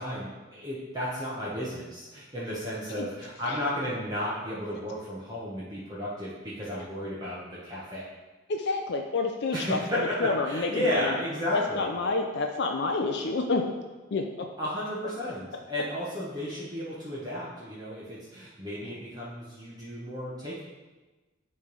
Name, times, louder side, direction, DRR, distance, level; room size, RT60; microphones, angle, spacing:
voice 1, 0.0-8.1 9.5-11.9 14.6-20.6, equal, 20° right, -8 dB, 1.1 m, -33 dB
voice 2, 8.5-11.1 11.5-13.6 14.1-14.2, left 3 dB, 55° left, 3 dB, 0.5 m, -29 dB
9.7 x 3.3 x 5.3 m, 1.2 s
head